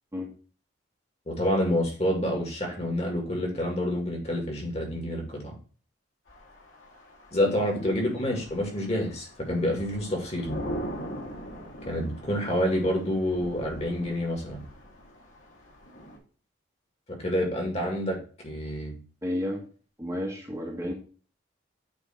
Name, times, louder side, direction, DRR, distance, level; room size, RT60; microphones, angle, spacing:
voice 1, 1.3-5.5 7.3-10.5 11.9-14.6 17.1-18.2 18.4-18.9, equal, 35° left, 0 dB, 2.0 m, -28 dB
sound 1, 6.3-16.2, equal, 90° left, 2.3 m, -41 dB
voice 2, 19.2-19.6 20.0-20.9, left 1 dB, 15° right, -2 dB, 1.2 m, -32 dB
8.4 x 3.4 x 4.4 m, 0.39 s
head